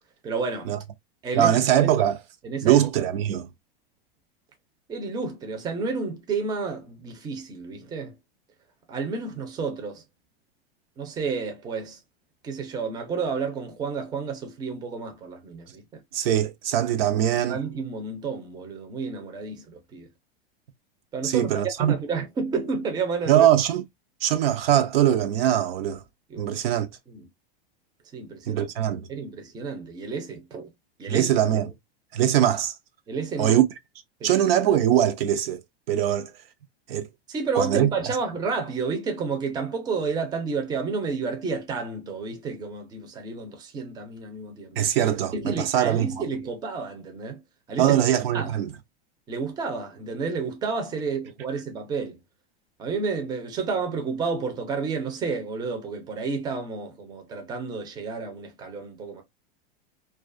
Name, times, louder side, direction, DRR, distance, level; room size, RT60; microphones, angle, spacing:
voice 1, 0.2-0.7 1.2-1.9 2.4-2.9 4.9-8.1 8.9-10.0 11.0-12.0 12.4-16.0 17.3-20.1 21.1-21.5 21.8-23.5 26.3-26.6 27.1-27.2 28.1-28.7 29.1-30.7 31.0-31.3 33.1-33.6 34.2-34.3 37.3-44.9 45.3-47.4 47.7-48.0 48.3-48.5 49.3-52.2 52.8-59.2, right 4 dB, 15° right, 0.5 m, -31 dB
voice 2, 1.3-2.2 2.6-3.5 16.1-17.6 21.2-21.9 23.3-23.8 24.2-26.0 26.4-26.9 28.5-29.1 31.1-31.7 32.1-32.7 33.4-33.6 34.2-35.6 35.9-36.3 36.9-37.1 37.6-38.2 44.8-46.1 47.8-48.7, right 11 dB, 70° right, 0.6 m, -22 dB
2.4 x 2.3 x 2.4 m
supercardioid pair, 140°, 30 cm